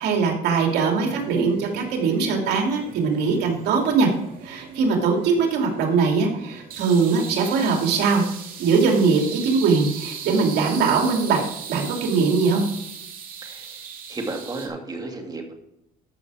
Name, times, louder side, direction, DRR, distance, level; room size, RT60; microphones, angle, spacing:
voice 1, 0.0-4.1 4.4-8.2 8.6-11.4 11.7-12.6, right 5 dB, 75° right, 1 dB, 2.8 m, -21 dB
sound 1, 0.7-14.7, right 7 dB, 55° right, 2.3 m, -39 dB
voice 2, 14.1-15.5, right 2 dB, 25° right, 3 dB, 2.3 m, -33 dB
13.5 x 6.2 x 4.9 m, 0.82 s
cardioid pair, 110°, 17 cm